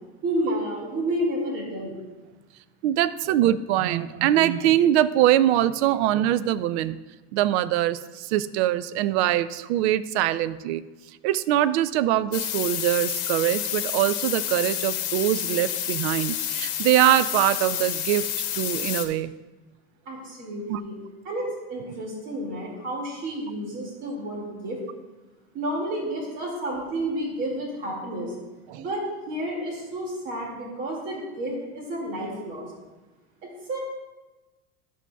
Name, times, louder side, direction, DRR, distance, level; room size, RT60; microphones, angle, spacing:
voice 1, 0.2-2.0 20.1-21.0 21.2-24.8 25.5-28.3 28.8-32.7 33.4-33.8, right 1 dB, 35° right, -2 dB, 2.3 m, -30 dB
voice 2, 2.8-7.0 7.3-10.8 11.2-18.2 18.5-19.3 20.7-20.8 28.7-28.8, right 13 dB, 90° right, 15 dB, 0.5 m, -23 dB
sound 1, 12.3-19.0, left 11 dB, 80° left, 1.1 m, -29 dB
11.5 x 8.4 x 2.3 m, 1.1 s
cardioid pair, 175°, 32 cm